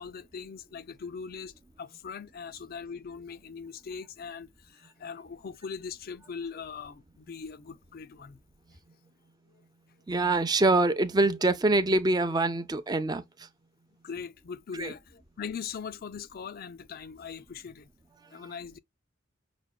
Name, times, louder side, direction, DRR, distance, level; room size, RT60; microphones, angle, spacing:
voice 1, 0.0-8.4 14.0-17.9 18.3-18.8, left 6 dB, 50° left, 0.4 m, -41 dB
voice 2, 10.1-13.5 14.7-14.9, right 2 dB, 20° right, 0.5 m, -25 dB
6.0 x 2.2 x 2.3 m
head